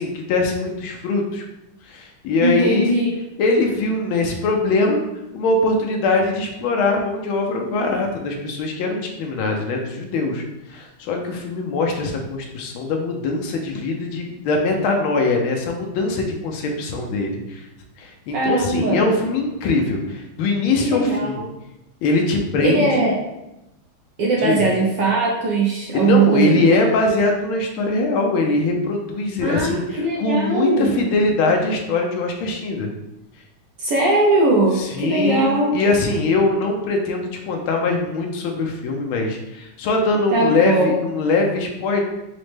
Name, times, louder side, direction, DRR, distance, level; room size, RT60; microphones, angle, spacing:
voice 1, 0.0-1.4 1.8-3.0 3.4-5.0 5.3-10.4 10.7-17.7 18.0-21.4 22.0-23.0 24.4-24.7 25.9-32.9 34.8-42.0, left 3 dB, 75° left, 2 dB, 1.3 m, -22 dB
voice 2, 2.4-3.1 18.3-19.1 20.8-21.4 22.6-23.1 24.2-26.6 29.4-31.0 33.8-35.7 40.3-41.0, right 2 dB, 70° right, -3 dB, 1.1 m, -19 dB
5.0 x 2.1 x 3.2 m, 0.92 s
omnidirectional pair, 2.4 m